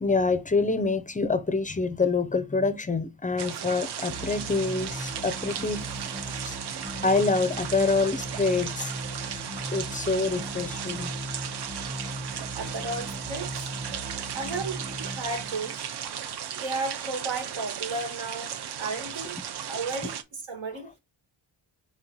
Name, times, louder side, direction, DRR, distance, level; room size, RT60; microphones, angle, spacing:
voice 1, 0.0-5.9 6.3-11.1, left 3 dB, 20° left, 0.4 m, -27 dB
sound 1, 3.4-20.2, right 8 dB, 60° right, 0.6 m, -36 dB
sound 2, 4.1-16.0, equal, 5° right, 0.7 m, -38 dB
voice 2, 12.5-13.7 14.3-14.8 15.1-15.9 16.5-19.4 19.6-20.9, right 3 dB, 85° right, 1.6 m, -34 dB
4.3 x 2.9 x 3.7 m
wide cardioid pair, 125°, 46 cm